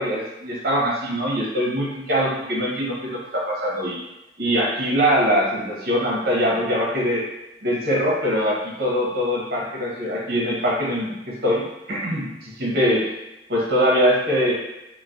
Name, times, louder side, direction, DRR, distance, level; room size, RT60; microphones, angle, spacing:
voice 1, 0.0-4.0 4.4-7.2 7.6-13.0 13.5-14.5, equal, 55° right, -4 dB, 0.8 m, -22 dB
3.0 x 2.1 x 2.6 m, 0.96 s
head